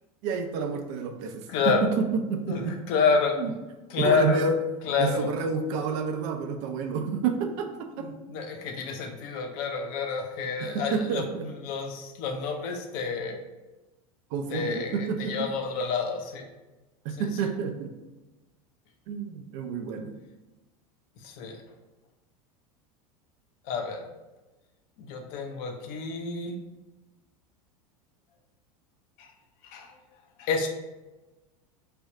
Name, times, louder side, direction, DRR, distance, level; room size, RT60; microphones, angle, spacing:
voice 1, 0.2-2.8 3.4-3.5 4.0-4.5 5.0-8.1 10.6-11.5 14.3-15.5 17.0-17.9 19.1-20.1, right 5 dB, 60° right, 5 dB, 0.6 m, -29 dB
voice 2, 1.5-2.0 2.5-3.4 3.9-4.4 4.8-5.3 8.0-13.4 14.5-16.4 17.2-17.3 21.2-21.6 23.7-24.1 25.0-26.6 29.2-29.3 29.6-29.9 30.4-30.7, left 5 dB, 55° left, 4 dB, 0.7 m, -29 dB
3.4 x 2.4 x 4.2 m, 1.1 s
hypercardioid pair, 90°, 18 cm